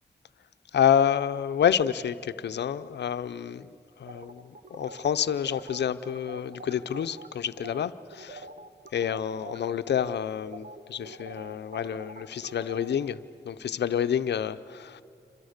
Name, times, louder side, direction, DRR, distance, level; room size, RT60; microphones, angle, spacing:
voice 1, 0.7-3.7 4.0-8.4 8.9-13.2 13.5-15.0, left 9 dB, 90° left, 13 dB, 0.7 m, -28 dB
sound 1, 4.1-7.3 7.6-7.8 8.1-12.9, right 2 dB, 60° right, 1.9 m, -45 dB
29.0 x 26.0 x 6.6 m, 2.5 s
cardioid pair, 45°, 17 cm